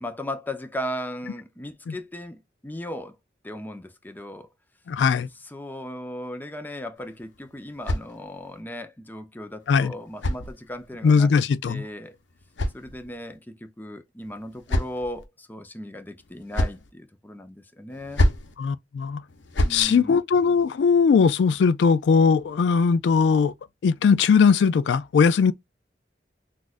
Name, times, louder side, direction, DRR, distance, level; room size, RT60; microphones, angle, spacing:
voice 1, 0.0-3.2 3.4-4.5 5.4-11.3 11.7-12.2 12.7-18.3 19.6-20.2, left 1 dB, 10° left, 0.7 m, -37 dB
voice 2, 4.9-5.3 9.7-9.9 11.0-11.8 18.6-19.2 19.7-23.5 23.8-25.5, left 5 dB, 70° left, 0.3 m, -19 dB
sound 1, 7.0-8.6 9.6-11.0 12.0-13.4 14.2-15.2 16.2-16.9 17.9-18.5 19.3-19.8, left 1 dB, 90° left, 0.8 m, -29 dB
6.1 x 2.5 x 2.5 m
head